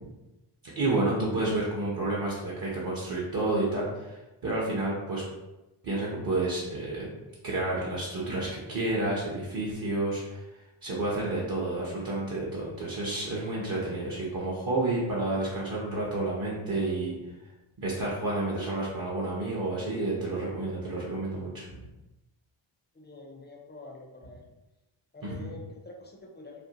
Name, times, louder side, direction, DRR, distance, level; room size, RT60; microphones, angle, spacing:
voice 1, 0.8-5.2 5.8-7.1 7.4-10.4 10.8-17.2 17.8-21.8 25.2-25.5, right 2 dB, 45° right, -5 dB, 0.7 m, -30 dB
voice 2, 22.9-24.4 25.1-26.7, left 2 dB, 20° left, 1 dB, 0.4 m, -46 dB
2.5 x 2.1 x 2.8 m, 1.0 s
cardioid pair, 95°, 50 cm